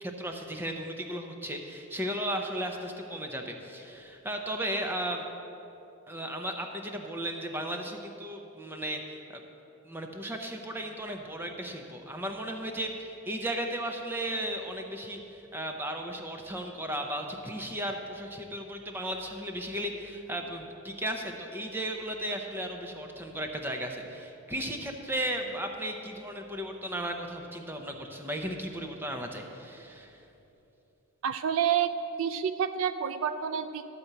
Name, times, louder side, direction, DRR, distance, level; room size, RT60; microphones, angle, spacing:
voice 1, 0.0-5.2 6.1-9.4 9.8-30.2, right 1 dB, 10° right, 3 dB, 0.6 m, -35 dB
voice 2, 31.2-31.9 32.2-33.9, right 8 dB, 60° right, 11 dB, 0.3 m, -28 dB
12.5 x 4.3 x 7.9 m, 2.9 s
head